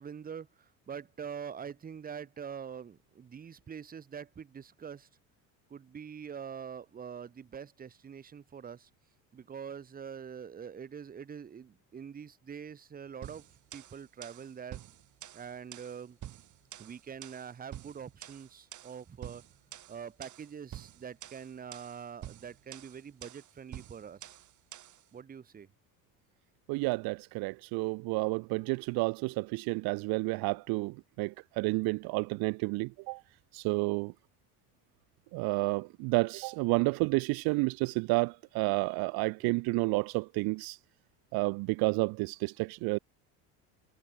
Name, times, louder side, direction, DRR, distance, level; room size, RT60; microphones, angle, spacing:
voice 1, 0.0-5.1 5.7-8.9 9.3-13.4 13.7-14.8 15.3-16.2 16.8-19.4 19.9-24.4 25.1-25.7, right 7 dB, 20° right, 1.0 m, -44 dB
sound 1, 13.2-25.0, right 12 dB, 50° right, 2.9 m, -48 dB
voice 2, 26.7-33.2 33.5-34.1 35.3-40.8 41.3-43.0, right 27 dB, 65° right, 0.7 m, -30 dB
supercardioid pair, 105°, 39 cm